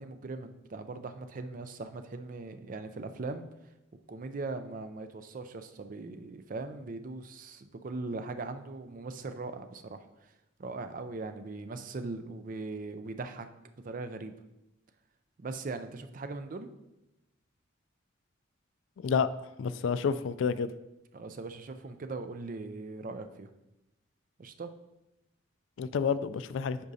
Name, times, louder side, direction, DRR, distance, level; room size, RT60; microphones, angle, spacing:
voice 1, 0.0-3.5 4.1-10.0 10.6-13.5 13.8-14.3 15.4-16.7 21.1-23.5 24.4-24.7, right 3 dB, 45° right, 9 dB, 0.4 m, -40 dB
voice 2, 19.0-19.3 19.6-20.7 25.8-26.8, left 6 dB, 70° left, 14 dB, 0.3 m, -29 dB
9.7 x 5.1 x 2.7 m, 0.94 s
head